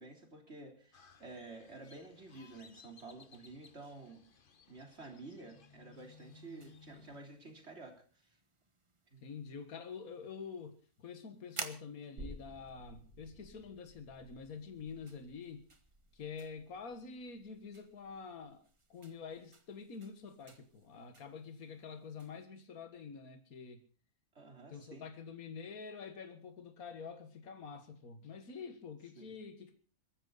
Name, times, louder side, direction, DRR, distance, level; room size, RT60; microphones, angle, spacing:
voice 1, 0.0-4.3 4.7-8.3 9.1-9.2 24.4-25.1 29.2-29.4, right 3 dB, 45° right, 3.8 m, -51 dB
Crow, 0.9-7.2, left 5 dB, 40° left, 1.1 m, -61 dB
sound 1, 5.9-22.5, right 3 dB, 20° right, 1.2 m, -54 dB
voice 2, 9.2-15.7 16.1-23.8 24.7-29.7, left 5 dB, 70° left, 2.1 m, -47 dB
sound 2, 12.2-19.5 19.8-19.9, equal, 85° right, 3.6 m, -56 dB
22.0 x 14.0 x 4.0 m
omnidirectional pair, 1.6 m